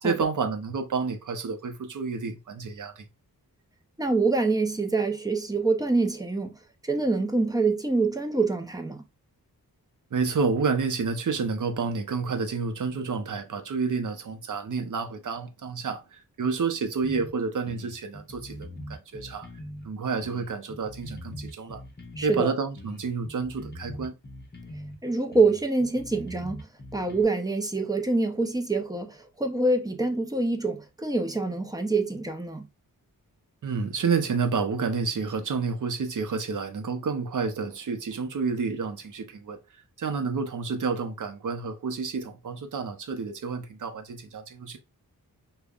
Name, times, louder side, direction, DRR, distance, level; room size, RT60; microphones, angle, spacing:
voice 1, 0.0-3.0 10.1-19.5 19.8-21.8 22.2-24.1 33.6-39.6 40.0-44.8, right 5 dB, 55° right, 0.7 m, -29 dB
voice 2, 4.0-6.6 6.8-9.0 22.2-22.5 25.0-26.7 26.9-32.6, right 3 dB, 10° right, 0.6 m, -25 dB
sound 1, 17.0-17.3 17.7-19.9 20.2-22.4 22.8-25.0 25.3-27.2, equal, 25° left, 0.9 m, -42 dB
5.1 x 2.3 x 2.3 m
wide cardioid pair, 90°, 37 cm